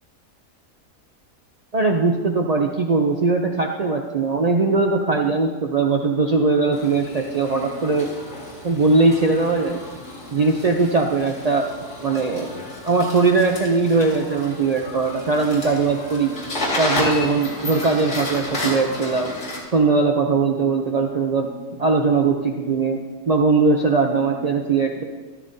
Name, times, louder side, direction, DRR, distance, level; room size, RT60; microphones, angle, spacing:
voice 1, 1.7-8.1 8.6-9.8 10.3-11.7 12.0-12.5 12.8-16.3 16.8-19.3 19.7-21.5 21.8-23.0 23.3-25.0, right 4 dB, 85° right, 2 dB, 0.3 m, -20 dB
sound 1, 6.7-19.6, left 1 dB, 50° left, 2.6 m, -32 dB
13.5 x 13.0 x 2.7 m, 1.4 s
omnidirectional pair, 1.6 m